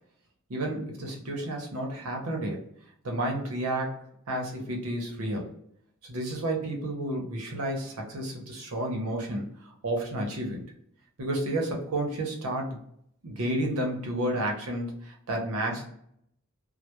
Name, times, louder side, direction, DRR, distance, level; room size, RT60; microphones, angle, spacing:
voice 1, 0.5-2.6 3.0-4.0 4.3-5.5 6.0-10.6 11.2-12.8 13.2-15.9, right 1 dB, 85° right, 1 dB, 0.7 m, -31 dB
2.2 x 2.0 x 2.9 m, 0.71 s
head